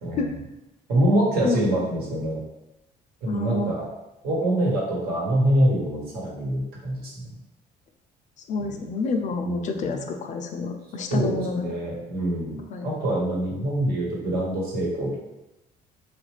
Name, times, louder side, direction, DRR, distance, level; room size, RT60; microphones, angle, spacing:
voice 1, 0.0-0.3 0.9-2.4 3.2-3.8 4.2-7.3 8.6-8.7 9.4-10.0 11.1-15.2, right 1 dB, 65° right, -4 dB, 1.3 m, -25 dB
voice 2, 3.3-3.7 8.5-11.8 12.7-12.9, left 3 dB, 45° left, 5 dB, 0.4 m, -28 dB
3.2 x 2.4 x 3.2 m, 0.94 s
cardioid pair, 110°, 17 cm